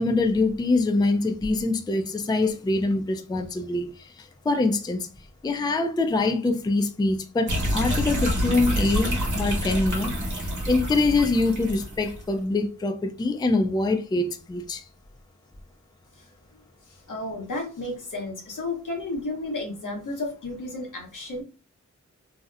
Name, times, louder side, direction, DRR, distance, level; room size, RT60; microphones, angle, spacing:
voice 1, 0.0-5.1 5.4-10.1 10.4-14.8, left 2 dB, 15° left, 0.4 m, -24 dB
sound 1, 7.5-12.3, equal, 70° right, 1.0 m, -27 dB
voice 2, 16.9-21.4, left 2 dB, 80° left, 0.9 m, -33 dB
2.8 x 2.0 x 2.4 m
cardioid pair, 50°, 31 cm